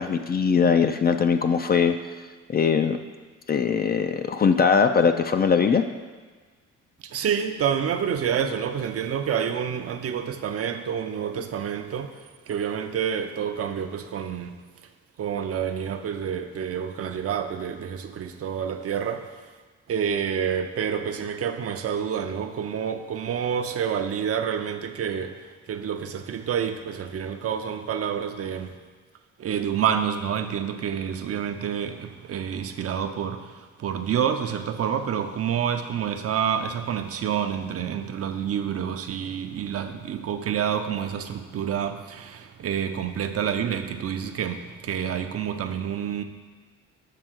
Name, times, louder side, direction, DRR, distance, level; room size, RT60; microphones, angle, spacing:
voice 1, 0.0-1.9 2.5-3.0 3.5-5.8, left 6 dB, 30° left, 8 dB, 0.4 m, -21 dB
voice 2, 7.0-12.1 12.5-14.5 15.2-19.3 19.9-25.4 25.7-28.7 29.4-46.2, right 8 dB, 50° right, 7 dB, 0.6 m, -28 dB
7.7 x 3.4 x 6.2 m, 1.4 s
cardioid pair, 90°, 30 cm